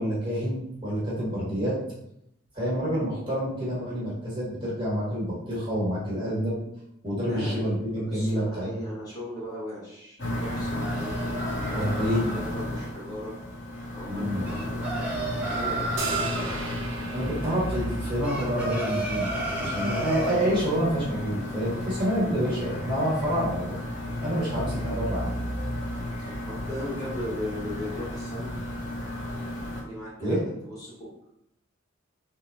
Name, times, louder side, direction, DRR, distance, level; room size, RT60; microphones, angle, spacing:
voice 1, 0.0-1.7 2.5-6.6 7.0-8.8 11.7-12.3 14.1-14.4 17.1-23.7 24.2-25.3 30.2-30.4, equal, 25° right, -7 dB, 1.4 m, -28 dB
voice 2, 7.3-11.1 11.6-13.3 13.9-15.9 19.5-20.1 26.4-28.5 29.8-31.1, left 1 dB, 20° left, -7 dB, 1.2 m, -38 dB
sound 1, 10.2-29.8, left 1 dB, 60° left, 1.1 m, -33 dB
sound 2, 10.4-12.4 14.4-16.5 18.2-20.4, right 2 dB, 5° right, 0.7 m, -32 dB
sound 3, 16.0-18.5, right 4 dB, 65° right, 0.8 m, -37 dB
3.9 x 2.8 x 3.5 m, 0.77 s
head